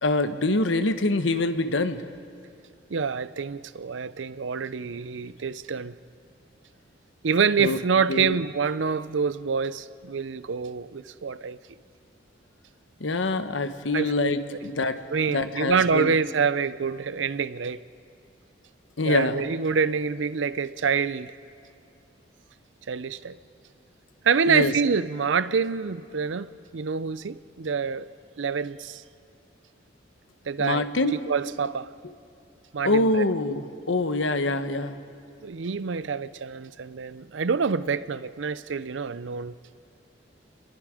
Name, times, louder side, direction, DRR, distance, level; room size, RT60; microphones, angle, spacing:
voice 1, 0.0-2.1 7.6-7.8 8.1-8.4 13.0-15.0 15.3-16.2 19.0-19.4 24.5-24.7 30.6-31.3 32.8-35.0, left 2 dB, 85° left, 1.0 m, -25 dB
voice 2, 2.9-5.9 7.2-11.6 13.9-14.3 15.1-17.8 19.0-21.3 22.9-23.4 24.2-28.1 28.4-29.0 30.5-30.8 31.1-31.9 32.7-33.1 35.4-39.5, right 5 dB, 80° right, 0.6 m, -26 dB
28.5 x 21.0 x 5.0 m
head